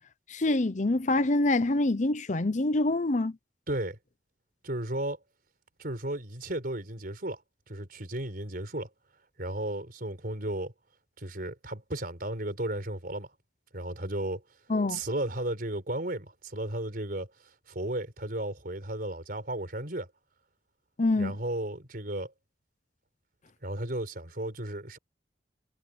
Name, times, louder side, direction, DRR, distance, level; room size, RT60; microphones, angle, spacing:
voice 1, 0.3-3.3 14.7-15.0 21.0-21.4, left 2 dB, 45° left, 0.8 m, -25 dB
voice 2, 3.7-4.0 4.6-5.2 5.8-7.4 7.7-8.9 9.4-10.7 11.2-13.3 13.7-14.4 14.9-17.3 17.7-20.1 21.2-22.3 23.6-25.0, right 1 dB, 55° right, 4.7 m, -34 dB
head